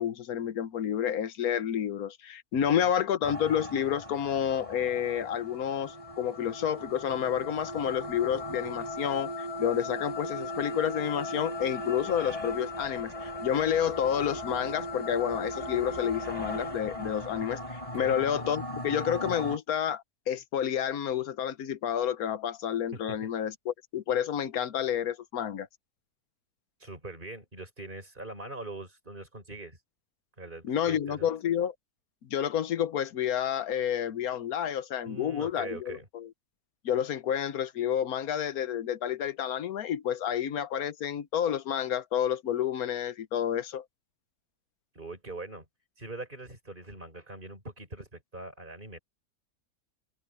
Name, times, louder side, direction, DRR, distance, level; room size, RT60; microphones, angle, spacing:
voice 1, 0.0-25.7 30.6-31.7 32.2-36.3 36.8-43.8, left 9 dB, 65° left, 1.4 m, -30 dB
sound 1, 3.2-19.6, left 1 dB, 20° left, 4.1 m, -37 dB
voice 2, 22.9-23.3 26.8-29.8 30.4-31.3 35.0-36.1 44.9-45.7 46.0-49.0, right 2 dB, 30° right, 5.6 m, -42 dB
omnidirectional pair, 1.7 m